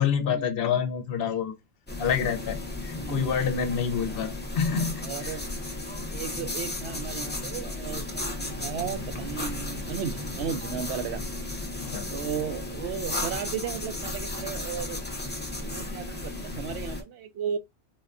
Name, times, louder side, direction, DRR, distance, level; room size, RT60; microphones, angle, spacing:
voice 1, 0.0-1.6 2.0-5.4 11.8-12.1, left 7 dB, 65° left, 0.7 m, -27 dB
sound 1, 1.9-17.0, left 2 dB, 15° left, 0.5 m, -34 dB
voice 2, 3.0-3.4 4.1-4.2 5.0-5.4 6.1-11.2 12.1-15.0 15.6-17.6, right 7 dB, 80° right, 0.8 m, -35 dB
sound 2, 8.2-11.4, right 3 dB, 55° right, 0.6 m, -42 dB
4.0 x 2.2 x 2.4 m
omnidirectional pair, 1.1 m